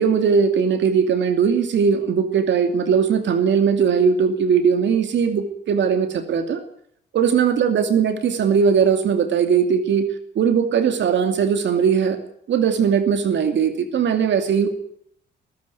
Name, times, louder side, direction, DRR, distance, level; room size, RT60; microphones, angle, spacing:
voice 1, 0.0-6.6 7.1-10.1 10.4-12.2 12.5-14.7, right 6 dB, 65° right, 8 dB, 2.6 m, -19 dB
22.0 x 14.5 x 9.3 m, 0.67 s
cardioid pair, 90°, 20 cm